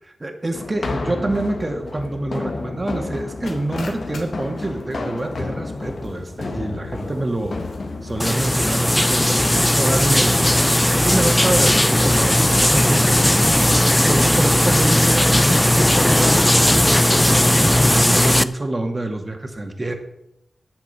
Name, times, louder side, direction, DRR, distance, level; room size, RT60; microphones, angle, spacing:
voice 1, 0.0-7.6 8.0-13.2 13.9-19.9, right 2 dB, 25° right, 4 dB, 2.1 m, -27 dB
sound 1, 0.5-18.0, left 3 dB, 60° left, 1.7 m, -32 dB
sound 2, 3.5-9.3, left 3 dB, 75° left, 2.9 m, -45 dB
sound 3, 8.2-18.4, left 1 dB, 10° left, 0.5 m, -16 dB
10.5 x 8.6 x 8.3 m, 0.82 s
wide cardioid pair, 95°, 0 cm